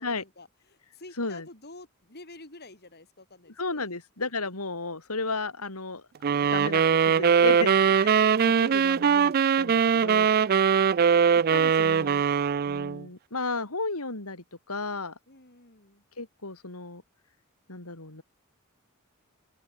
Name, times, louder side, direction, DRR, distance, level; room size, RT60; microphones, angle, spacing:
voice 1, 0.0-3.9 4.2-4.3 10.4-10.9 15.3-16.0, left 2 dB, 50° left, 6.5 m, -50 dB
voice 2, 3.6-6.0 6.4-10.6 11.5-12.2 12.7-15.1 16.2-17.0 17.7-18.2, left 3 dB, 80° left, 3.9 m, -34 dB
sound 1, 6.2-13.0, right 7 dB, 45° right, 0.4 m, -22 dB
open air
head